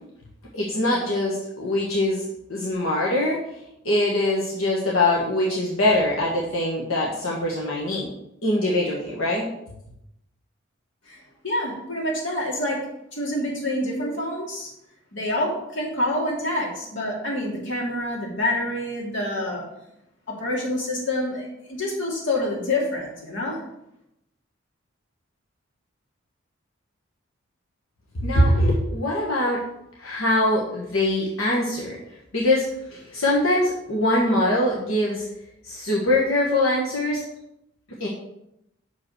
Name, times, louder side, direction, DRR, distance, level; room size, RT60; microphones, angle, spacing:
voice 1, 0.5-2.2 2.5-3.4 3.8-8.1 8.4-9.5 28.1-29.6 30.0-35.2 35.6-37.2 38.0-38.1, left 1 dB, 85° left, -4 dB, 1.4 m, -23 dB
voice 2, 11.1-12.8 13.1-14.7 15.1-19.6 20.3-23.6, left 1 dB, 65° left, -2 dB, 2.4 m, -27 dB
6.2 x 5.1 x 6.3 m, 0.82 s
head